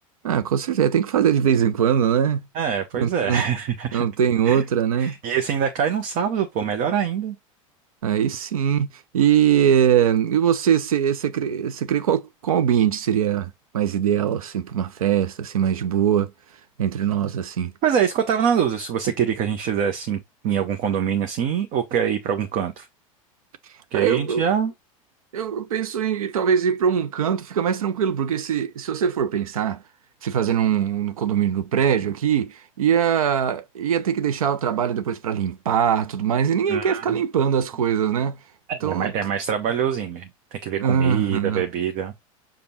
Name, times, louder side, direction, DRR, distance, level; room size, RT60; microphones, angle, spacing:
voice 1, 0.2-2.4 2.9-3.4 3.9-5.1 8.0-8.9 9.1-16.3 16.8-17.7 23.9-24.4 25.3-29.8 30.2-38.4 38.8-39.1 40.8-41.6, right 8 dB, 80° right, 0.7 m, -22 dB
voice 2, 2.5-4.0 4.5-4.6 5.0-7.4 17.8-22.9 23.9-24.7 36.7-37.0 38.7-42.1, right 8 dB, 45° right, 0.8 m, -24 dB
5.2 x 2.4 x 4.2 m
hypercardioid pair, 95°, 18 cm